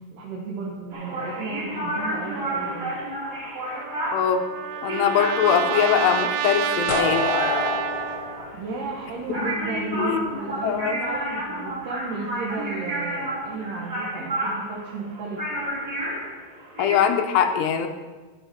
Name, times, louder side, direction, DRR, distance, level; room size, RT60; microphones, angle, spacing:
voice 1, 0.1-2.9 8.5-15.4, right 3 dB, 70° right, -2 dB, 2.2 m, -33 dB
sound 1, 0.9-17.1, right 1 dB, 25° right, 2.5 m, -31 dB
Trumpet, 3.7-8.6, right 10 dB, 90° right, 2.2 m, -29 dB
voice 2, 4.1-4.5 4.8-7.3 9.4-9.5 9.9-10.2 10.6-11.0 16.8-17.9, left 8 dB, 80° left, 7 dB, 2.8 m, -22 dB
sound 2, 6.9-9.7, left 4 dB, 60° left, 2.1 m, -27 dB
14.5 x 5.2 x 6.1 m, 1.3 s
omnidirectional pair, 5.1 m